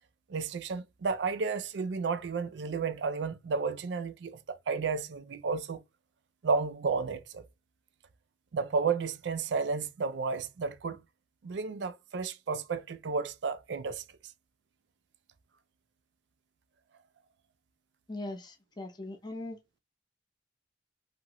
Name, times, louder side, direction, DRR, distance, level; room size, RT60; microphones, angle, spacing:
voice 1, 0.3-5.8 6.4-7.4 8.5-11.0 11.4-14.0, right 4 dB, 70° right, 0.4 m, -32 dB
voice 2, 18.1-19.6, left 2 dB, 25° left, 0.6 m, -40 dB
2.8 x 2.5 x 2.9 m
head